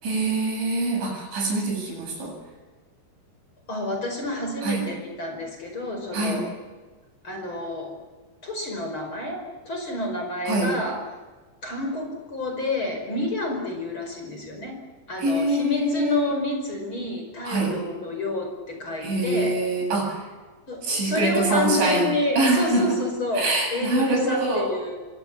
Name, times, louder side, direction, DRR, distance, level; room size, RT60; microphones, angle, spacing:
voice 1, 0.0-2.4 4.6-4.8 6.1-6.4 10.5-10.7 15.2-16.3 17.4-17.8 19.0-20.2 20.8-22.1 22.4-23.0 23.4-24.7, right 2 dB, 85° right, 1 dB, 10.5 m, -24 dB
voice 2, 3.7-6.5 7.2-8.0 8.4-11.0 11.6-14.8 15.1-19.6 20.7-25.0, left 2 dB, 25° left, 3 dB, 5.6 m, -29 dB
28.5 x 24.0 x 7.4 m, 1.3 s
omnidirectional pair, 5.2 m